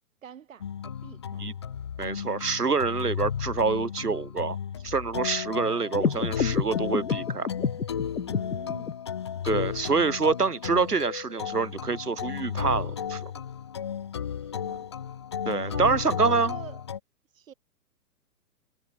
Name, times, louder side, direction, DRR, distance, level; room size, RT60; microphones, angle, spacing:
voice 1, 0.2-1.4 8.3-8.9 14.4-14.9 15.6-16.8 17.3-17.5, right 8 dB, 55° right, 3.6 m, -45 dB
sound 1, 0.6-17.0, left 8 dB, 20° left, 0.4 m, -34 dB
voice 2, 2.0-4.6 4.8-7.5 9.4-13.3 15.4-16.6, right 4 dB, 85° right, 1.4 m, -26 dB
sound 2, 5.9-8.9, left 6 dB, 70° left, 1.9 m, -29 dB
figure-of-eight pair, 115°, 46 cm